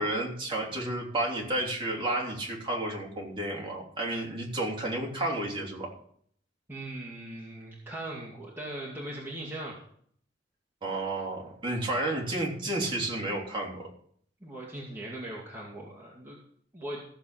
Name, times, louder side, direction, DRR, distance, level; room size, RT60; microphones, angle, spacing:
voice 1, 0.0-5.9 10.8-13.9, right 1 dB, 30° right, -2 dB, 3.3 m, -31 dB
voice 2, 6.7-9.8 14.4-16.4 16.7-17.0, right 1 dB, 10° right, -5 dB, 2.2 m, -39 dB
15.0 x 7.3 x 5.8 m, 0.62 s
head